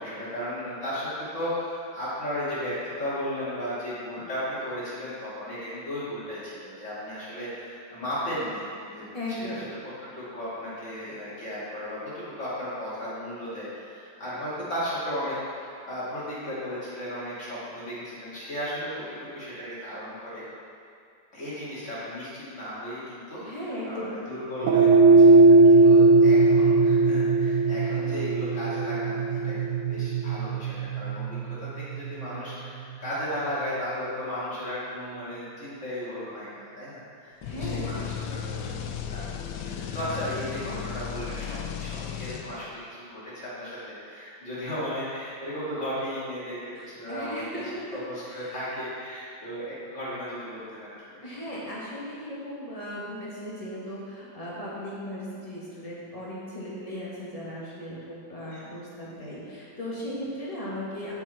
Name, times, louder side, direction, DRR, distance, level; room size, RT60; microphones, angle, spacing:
voice 1, 0.0-20.4 21.3-23.4 23.9-46.6 46.9-47.6 47.9-51.2 58.5-58.8, equal, 40° left, -10 dB, 2.7 m, -35 dB
voice 2, 9.1-9.7 23.4-24.1 37.4-38.1 46.8-48.6 51.2-61.1, equal, 20° left, -7 dB, 1.8 m, -37 dB
sound 1, 24.6-33.1, right 3 dB, 85° right, 0.7 m, -19 dB
sound 2, 37.4-42.9, left 8 dB, 75° left, 1.1 m, -35 dB
8.1 x 6.9 x 4.3 m, 2.3 s
omnidirectional pair, 2.0 m